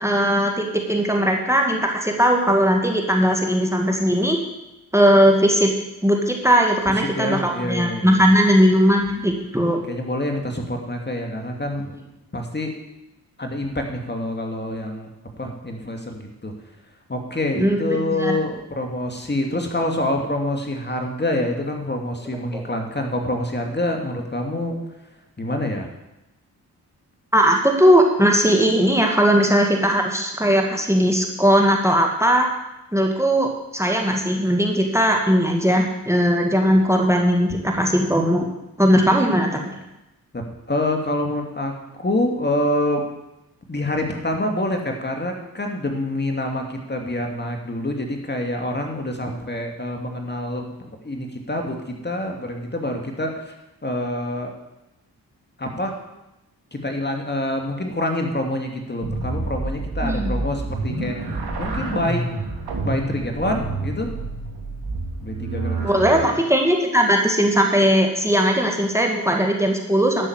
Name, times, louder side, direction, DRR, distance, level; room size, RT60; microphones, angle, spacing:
voice 1, 0.0-4.4 4.9-5.7 6.0-9.8 17.6-18.4 22.5-22.6 27.3-32.5 32.9-38.5 38.8-39.6 60.0-60.3 65.8-70.3, equal, 5° right, 1 dB, 2.3 m, -18 dB
voice 2, 6.9-8.2 9.9-12.0 12.3-12.8 13.4-15.1 15.4-16.5 17.1-24.8 25.4-25.9 40.3-41.7 42.0-43.0 43.7-50.7 51.0-53.5 53.8-54.5 55.6-55.9 56.7-62.3 62.8-64.1 65.2-66.3, left 1 dB, 25° left, 2 dB, 2.6 m, -26 dB
sound 1, 59.0-66.1, right 2 dB, 65° right, 3.2 m, -28 dB
12.5 x 6.6 x 8.1 m, 0.94 s
supercardioid pair, 50°, 41 cm